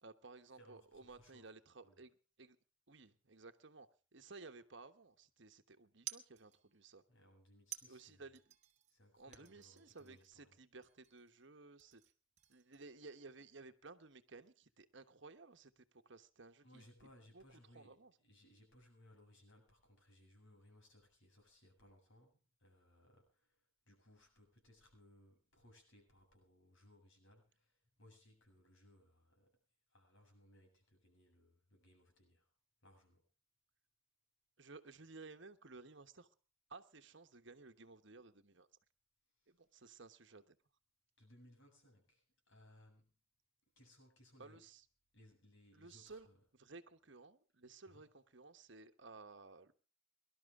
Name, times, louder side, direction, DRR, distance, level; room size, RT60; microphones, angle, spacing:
voice 1, 0.0-2.6 2.9-7.0 7.9-8.4 9.2-12.0 12.5-16.8 17.3-18.1 34.6-36.3 36.7-38.7 39.5-40.6 44.4-44.9 45.7-46.3 46.6-49.7, right 3 dB, 60° right, 1.2 m, -57 dB
voice 2, 0.6-1.5 1.8-2.0 7.1-8.3 8.9-10.6 16.6-29.5 29.9-32.5 32.8-33.3 39.4-39.5 41.2-43.2 43.8-44.6 45.1-46.4 47.9-48.0, left 1 dB, 65° left, 7.9 m, -66 dB
sound 1, 4.2-5.0 6.1-6.8 7.7-9.0 9.3-10.5 10.8-11.5 11.8-13.0, right 12 dB, 35° right, 1.3 m, -54 dB
23.5 x 12.5 x 3.7 m
head